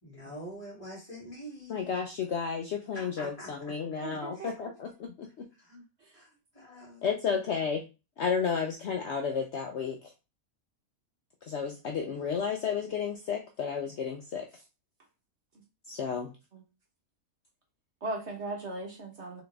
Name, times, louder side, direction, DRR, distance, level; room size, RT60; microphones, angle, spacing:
voice 1, 0.0-1.9 2.9-3.7 4.3-4.5 5.6-5.8 6.1-7.1, equal, 20° left, -6 dB, 2.7 m, -45 dB
voice 2, 1.7-5.5 7.0-7.8 8.2-10.0 11.4-14.5 15.9-16.3, left 6 dB, 60° left, 3 dB, 0.9 m, -32 dB
voice 3, 4.0-4.7 16.5-16.6 18.0-19.4, right 2 dB, 55° right, 1 dB, 1.2 m, -38 dB
4.0 x 3.8 x 3.4 m, 0.28 s
omnidirectional pair, 1.5 m